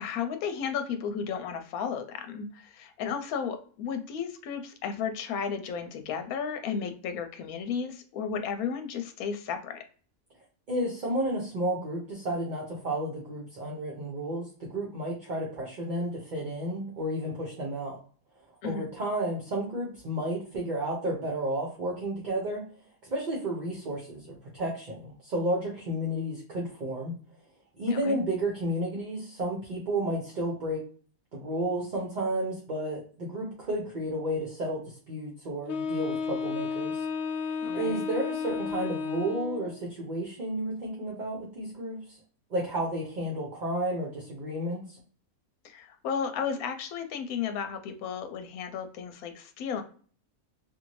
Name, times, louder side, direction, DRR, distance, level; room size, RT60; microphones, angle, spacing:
voice 1, 0.0-9.8 18.6-18.9 27.9-28.2 37.6-38.0 45.6-49.8, left 6 dB, 80° left, 7 dB, 1.0 m, -34 dB
voice 2, 10.7-18.0 18.6-22.6 23.1-27.1 27.8-30.8 31.3-37.0 37.7-42.2 42.5-45.0, right 1 dB, 45° right, -3 dB, 0.6 m, -32 dB
Wind instrument woodwind instrument, 35.7-39.8, left 5 dB, 65° left, 0.7 m, -32 dB
2.6 x 2.4 x 3.0 m, 0.44 s
omnidirectional pair, 1.5 m